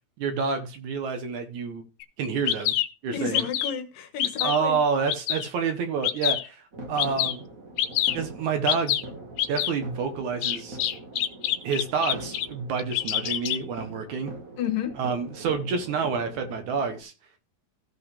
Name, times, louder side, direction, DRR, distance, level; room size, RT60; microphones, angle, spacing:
voice 1, 0.2-1.8 2.2-2.7 3.0-3.4 4.4-6.6 6.9-7.4 8.1-9.0 9.5-10.8 11.6-14.3 15.0-17.1, right 5 dB, 65° right, 2.1 m, -28 dB
Bird vocalization bird call bird song, 2.0-2.1 2.5-2.9 3.3-3.8 4.2-4.6 5.1-5.5 6.0-6.5 7.0-7.4 7.8-8.2 8.7-9.0 9.4-9.7 10.4-12.5 12.8-13.6, left 11 dB, 90° left, 2.5 m, -26 dB
voice 2, 3.1-4.8 14.6-15.0, left 8 dB, 75° left, 2.7 m, -31 dB
sound 1, 6.7-17.0, right 2 dB, 40° right, 1.2 m, -42 dB
15.5 x 5.7 x 3.3 m
omnidirectional pair, 4.1 m